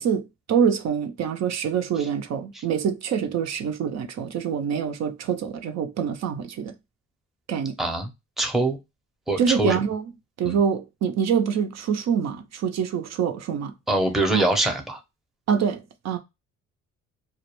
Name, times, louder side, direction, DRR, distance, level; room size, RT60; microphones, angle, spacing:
voice 1, 0.0-6.7 7.5-7.8 9.4-10.1 10.4-13.7 14.3-14.4 15.5-16.2, right 7 dB, 60° right, 0.5 m, -25 dB
voice 2, 7.8-8.1 8.4-8.8 9.3-9.8 10.4-10.6 13.9-15.0, right 1 dB, ahead, 0.6 m, -23 dB
2.3 x 2.1 x 2.9 m
cardioid pair, 90°, 30 cm